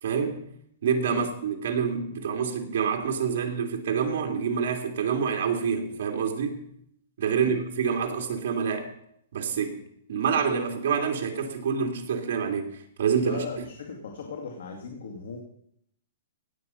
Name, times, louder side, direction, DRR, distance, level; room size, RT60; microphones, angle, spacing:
voice 1, 0.0-0.4 0.8-6.7 7.2-8.9 9.3-9.8 10.1-13.6, right 6 dB, 50° right, 2 dB, 2.6 m, -27 dB
voice 2, 13.2-15.4, left 5 dB, 80° left, 2 dB, 2.3 m, -38 dB
17.0 x 8.1 x 5.6 m, 0.70 s
hypercardioid pair, 175°, 0 cm